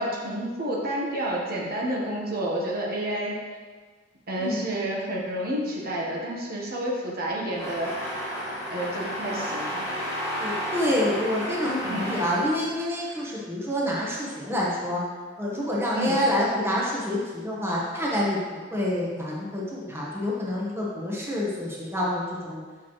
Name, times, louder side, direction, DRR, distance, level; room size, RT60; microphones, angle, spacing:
voice 1, 0.0-3.4 4.3-7.9 8.7-9.8 11.8-12.1 15.9-16.2, right 1 dB, 55° right, -3 dB, 1.1 m, -29 dB
sound 1, 7.5-13.3, equal, 15° left, 1.5 m, -32 dB
voice 2, 10.4-15.0 15.4-22.6, left 1 dB, 15° right, -5 dB, 1.1 m, -27 dB
6.9 x 6.1 x 3.1 m, 1.5 s
head